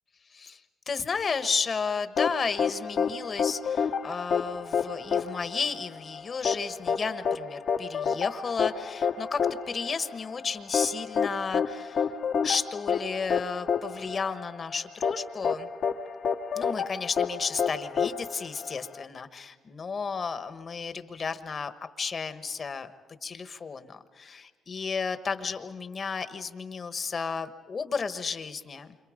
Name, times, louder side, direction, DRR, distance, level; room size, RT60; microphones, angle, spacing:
voice 1, 0.3-0.6 0.9-9.4 9.7-12.1 12.4-15.7 16.5-22.9 23.2-29.0, left 5 dB, 40° left, 10 dB, 1.2 m, -33 dB
sound 1, 2.2-19.0, left 6 dB, 60° left, 1.1 m, -29 dB
29.0 x 26.0 x 5.2 m, 1.4 s
cardioid pair, 90°, 0 cm